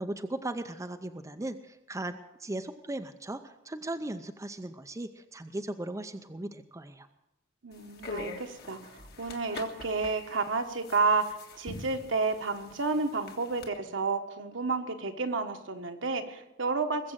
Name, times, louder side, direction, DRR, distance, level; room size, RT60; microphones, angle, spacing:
voice 1, 0.0-7.1, right 1 dB, 15° right, 7 dB, 0.6 m, -37 dB
voice 2, 7.6-17.1, right 4 dB, 70° right, 6 dB, 1.4 m, -31 dB
sound 1, 7.7-13.7, left 2 dB, 55° left, 1.8 m, -44 dB
21.0 x 7.6 x 7.5 m, 0.93 s
head